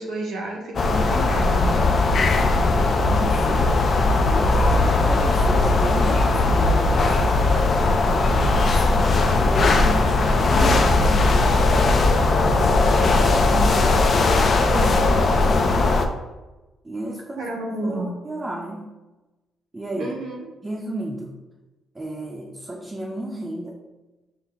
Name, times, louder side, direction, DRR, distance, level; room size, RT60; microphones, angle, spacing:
voice 1, 0.0-1.8 13.7-13.9 17.4-18.1 20.0-20.5, right 2 dB, 75° right, -1 dB, 1.0 m, -30 dB
sound 1, 0.8-16.1, left 3 dB, 45° left, 0.4 m, -18 dB
voice 2, 2.0-3.7 4.3-7.4 7.8-9.0 9.4-11.7 12.4-16.0 16.8-17.5 17.8-18.9 19.7-20.1 20.6-21.3 21.9-23.8, right 1 dB, 20° right, -2 dB, 0.6 m, -33 dB
5.6 x 2.1 x 3.5 m, 1.1 s
cardioid pair, 90°, 0 cm